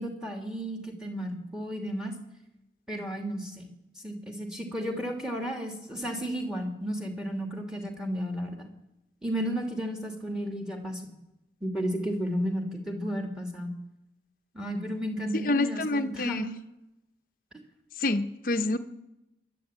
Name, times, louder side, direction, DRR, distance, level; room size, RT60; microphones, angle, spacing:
voice 1, 0.0-2.1 2.9-3.7 4.0-8.7 9.2-11.1 11.6-13.7 14.5-16.6, equal, 5° right, 4 dB, 2.8 m, -33 dB
voice 2, 15.4-16.5 18.0-18.8, left 2 dB, 50° left, 7 dB, 1.0 m, -27 dB
26.5 x 11.5 x 8.9 m, 0.94 s
head